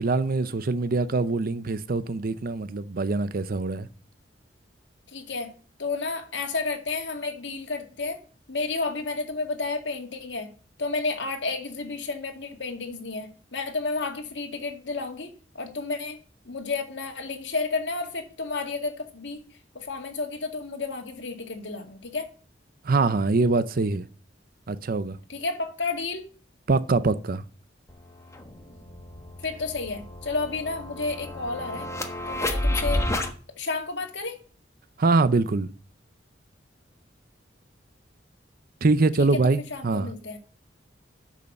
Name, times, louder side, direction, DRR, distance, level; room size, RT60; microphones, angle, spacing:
voice 1, 0.0-3.9 22.8-24.1 24.7-25.2 26.7-27.4 35.0-35.7 38.8-40.1, right 3 dB, 55° right, 0.6 m, -24 dB
voice 2, 5.1-5.5 5.8-8.2 8.5-10.5 10.8-16.2 16.4-22.3 25.3-26.2 29.4-31.9 32.3-33.0 33.6-34.4 39.7-40.4, left 3 dB, 75° left, 2.2 m, -31 dB
sound 1, 27.9-28.0 28.3-33.3, left 1 dB, 15° left, 1.3 m, -30 dB
8.5 x 6.7 x 6.7 m
head